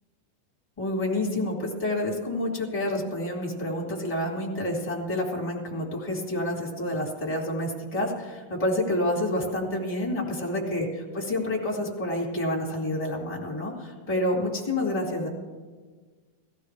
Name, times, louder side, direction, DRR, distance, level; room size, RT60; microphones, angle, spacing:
voice 1, 0.8-15.3, left 1 dB, 10° left, -2 dB, 2.0 m, -28 dB
18.0 x 14.0 x 3.3 m, 1.4 s
omnidirectional pair, 3.7 m